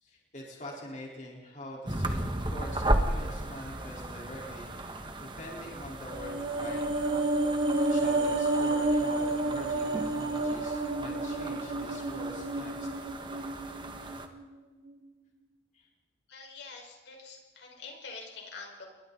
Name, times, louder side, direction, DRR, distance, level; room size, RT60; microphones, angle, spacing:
voice 1, 0.0-7.1 7.6-12.9 15.7-15.9, left 1 dB, 40° left, -2 dB, 4.3 m, -45 dB
sound 1, 1.9-14.3, right 1 dB, 25° right, 1.6 m, -35 dB
sound 2, 6.1-14.5 14.8-15.0, right 2 dB, 90° right, 4.0 m, -30 dB
voice 2, 16.3-18.9, left 4 dB, 75° left, 1 dB, 5.3 m, -46 dB
29.5 x 22.0 x 4.1 m, 1.3 s
head